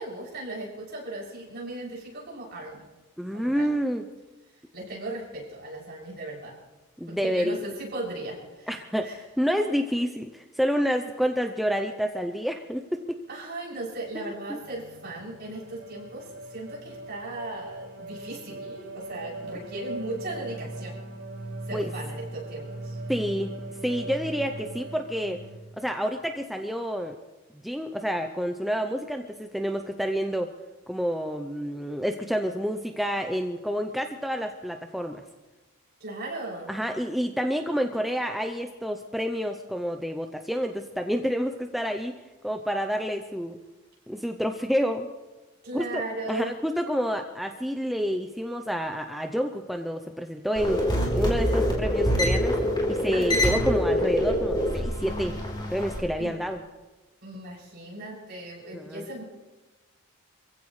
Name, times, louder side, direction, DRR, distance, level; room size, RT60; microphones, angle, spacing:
voice 1, 0.0-2.9 3.3-3.7 4.7-6.6 7.1-8.7 9.0-9.1 13.3-21.0 21.7-23.0 36.0-36.7 45.6-46.5 53.1-53.8 56.2-56.4 57.2-59.2, right 2 dB, 50° right, -4 dB, 7.0 m, -37 dB
voice 2, 3.2-4.1 7.0-7.6 8.7-13.2 14.1-14.6 21.7-21.9 23.1-25.4 25.8-27.2 27.6-30.5 30.9-35.2 36.7-42.1 42.4-43.6 44.1-45.1 45.7-46.0 46.3-52.6 52.9-55.4 55.7-56.6 58.7-59.1, equal, ahead, 4 dB, 0.6 m, -29 dB
sound 1, 14.6-25.6, right 2 dB, 65° right, 6.5 m, -39 dB
sound 2, 50.5-56.0, equal, 20° left, 4.0 m, -25 dB
26.5 x 16.0 x 3.3 m, 1.2 s
head